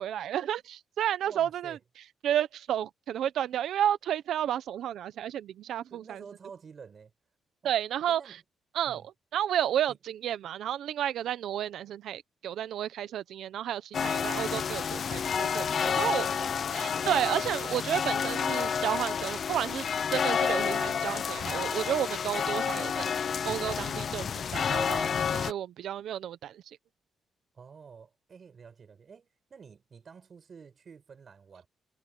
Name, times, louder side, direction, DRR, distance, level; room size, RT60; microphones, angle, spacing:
voice 1, 0.0-1.8 2.2-6.2 7.6-8.2 8.7-9.0 9.3-16.2 16.7-19.9 20.1-23.1 23.4-26.6, right 10 dB, 80° right, 0.8 m, -31 dB
voice 2, 1.3-1.8 5.9-7.1 7.6-7.7 8.1-8.4 8.9-9.1 9.9-10.0 15.8-17.0 27.5-31.7, right 6 dB, 40° right, 7.6 m, -49 dB
sound 1, 13.9-25.5, left 7 dB, 45° left, 0.5 m, -30 dB
cardioid pair, 155°, 0 cm